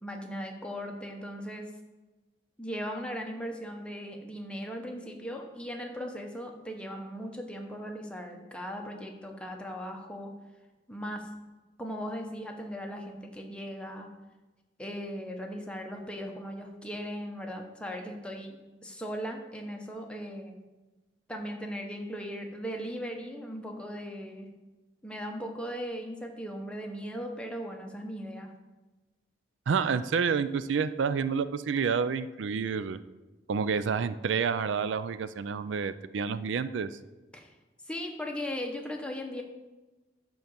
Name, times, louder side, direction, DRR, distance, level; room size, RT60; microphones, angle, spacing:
voice 1, 0.0-1.7 2.6-10.3 10.9-11.3 11.8-14.1 14.8-20.6 21.3-24.5 25.0-28.5 37.3-37.5 37.8-39.4, equal, 5° left, 2 dB, 1.0 m, -38 dB
voice 2, 29.7-33.0 33.5-36.9, right 6 dB, 90° right, 14 dB, 0.4 m, -29 dB
10.5 x 3.9 x 7.1 m, 1.2 s
head